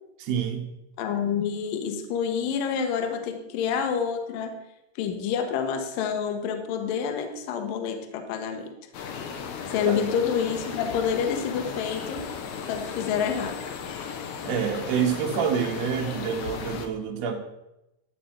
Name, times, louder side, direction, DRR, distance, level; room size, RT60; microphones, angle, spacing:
voice 1, 0.2-0.7 9.8-10.0 14.4-17.4, right 7 dB, 80° right, 3 dB, 1.5 m, -27 dB
voice 2, 1.0-4.6 5.0-8.7 9.7-12.3 12.7-13.6, left 7 dB, 70° left, 6 dB, 2.3 m, -28 dB
sound 1, 8.9-16.9, left 6 dB, 85° left, 1.6 m, -35 dB
12.5 x 4.3 x 7.7 m, 0.91 s
omnidirectional pair, 4.6 m